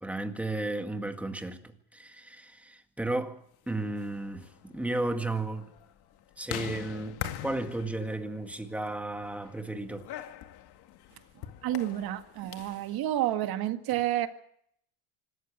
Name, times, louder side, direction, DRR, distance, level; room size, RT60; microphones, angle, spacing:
voice 1, 0.0-5.7 6.4-10.1, right 2 dB, 5° right, 2.0 m, -34 dB
sound 1, 3.8-12.9, left 11 dB, 50° left, 2.1 m, -43 dB
voice 2, 11.6-14.3, right 13 dB, 50° right, 2.0 m, -30 dB
25.5 x 14.0 x 9.0 m
cardioid pair, 135°, 47 cm